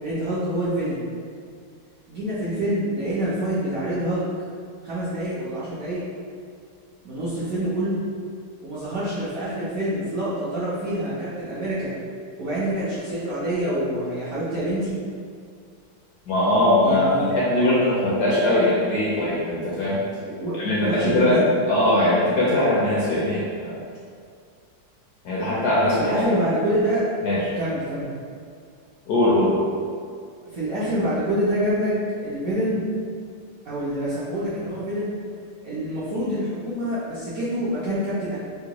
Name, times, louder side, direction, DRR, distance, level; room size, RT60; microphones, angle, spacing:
voice 1, 0.0-1.0 2.1-4.3 4.8-6.0 7.0-8.0 8.6-11.9 12.4-14.9 16.8-17.4 20.2-20.5 20.8-21.5 26.0-27.0 27.6-28.1 30.5-31.9 32.2-32.8 33.6-35.1 35.6-38.4, right 1 dB, 65° right, -11 dB, 0.9 m, -26 dB
voice 2, 16.3-20.0 20.6-21.4 21.7-23.8 25.2-26.3 27.2-27.5 29.1-29.6, left 1 dB, 70° left, -7 dB, 0.9 m, -21 dB
3.7 x 2.1 x 2.8 m, 2.2 s
omnidirectional pair, 2.1 m